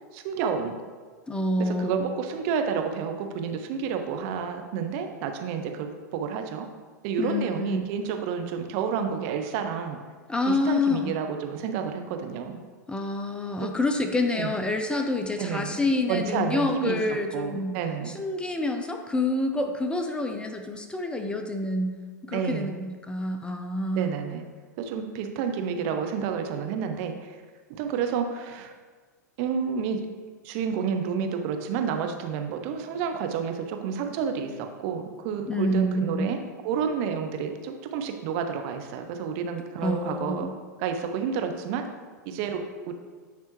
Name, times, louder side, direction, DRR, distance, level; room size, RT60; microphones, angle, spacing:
voice 1, 0.1-0.7 1.6-6.7 7.0-10.0 10.5-12.6 13.6-13.7 14.3-14.5 15.4-15.8 16.1-18.2 22.3-22.8 23.9-24.4 24.8-27.4 27.7-28.7 29.4-30.0 30.4-40.5 40.8-41.9 42.3-42.9, right 6 dB, 50° right, 5 dB, 0.7 m, -30 dB
voice 2, 1.3-2.1 7.2-7.9 10.3-11.1 12.9-17.7 18.1-22.0 22.3-24.2 35.5-36.3 39.8-40.5, left 2 dB, 10° left, 5 dB, 0.5 m, -27 dB
9.2 x 3.3 x 3.1 m, 1.5 s
hypercardioid pair, 100°, 10 cm